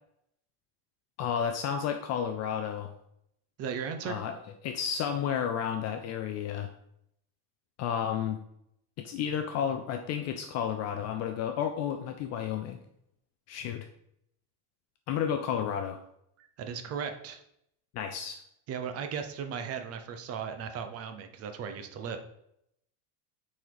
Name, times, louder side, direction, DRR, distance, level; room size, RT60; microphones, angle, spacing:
voice 1, 1.2-2.9 4.0-4.3 4.6-6.7 7.8-8.4 9.0-12.8 13.5-13.9 15.1-16.0 17.9-18.4, left 8 dB, 35° left, 6 dB, 0.4 m, -32 dB
voice 2, 3.6-4.2 16.4-17.4 18.7-22.2, right 7 dB, 30° right, 7 dB, 0.8 m, -36 dB
8.6 x 4.2 x 4.6 m, 0.76 s
cardioid pair, 165°, 45 cm